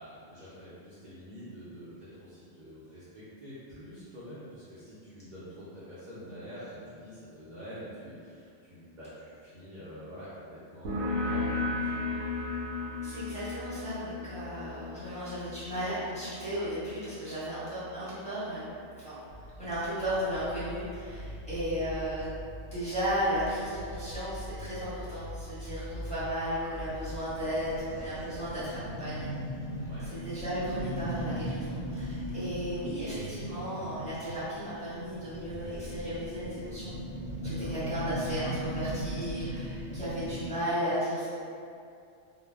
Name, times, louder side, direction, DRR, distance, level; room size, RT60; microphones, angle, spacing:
voice 1, 0.0-12.1 21.2-21.5 29.8-30.1 37.4-37.7, equal, 50° right, -11 dB, 0.6 m, -46 dB
sound 1, 10.9-18.1, left 3 dB, 85° right, 0.9 m, -35 dB
voice 2, 13.0-18.7 19.0-22.3 22.7-29.3 30.1-36.9 37.4-41.4, equal, 5° left, -15 dB, 1.1 m, -35 dB
sound 2, 19.3-27.7, equal, 70° right, 1.1 m, -43 dB
sound 3, 26.5-40.5, right 1 dB, 35° left, 0.9 m, -38 dB
2.1 x 2.1 x 3.3 m, 2.5 s
omnidirectional pair, 1.2 m